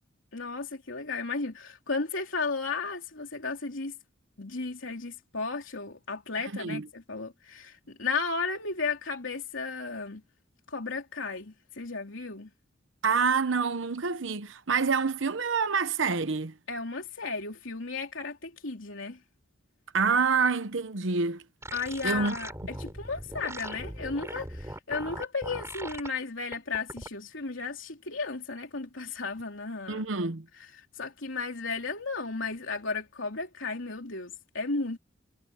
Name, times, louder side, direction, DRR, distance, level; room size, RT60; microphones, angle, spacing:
voice 1, 0.3-3.9 4.4-10.2 10.7-12.5 16.7-19.2 21.7-30.0 30.6-35.0, left 4 dB, 90° left, 3.1 m, -34 dB
voice 2, 6.4-6.8 13.0-16.5 19.9-21.4 22.0-22.4 29.9-30.5, right 5 dB, 75° right, 0.9 m, -27 dB
sound 1, 21.6-26.1 26.5-27.1, right 1 dB, 15° right, 4.0 m, -40 dB
head